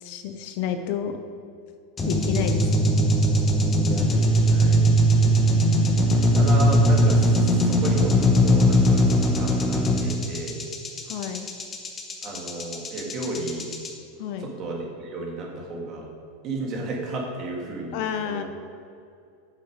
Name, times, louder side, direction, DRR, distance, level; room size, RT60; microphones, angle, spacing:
voice 1, 0.0-1.2 2.1-3.0 11.1-11.5 14.2-14.5 17.9-18.4, left 8 dB, 50° left, 8 dB, 0.6 m, -30 dB
sound 1, 2.0-13.9, equal, 15° left, 0.9 m, -20 dB
voice 2, 3.8-4.9 5.9-10.6 12.2-13.7 14.4-16.1 16.4-18.4, right 2 dB, 30° right, -1 dB, 1.8 m, -33 dB
7.7 x 7.1 x 5.0 m, 2.4 s
supercardioid pair, 165°, 0 cm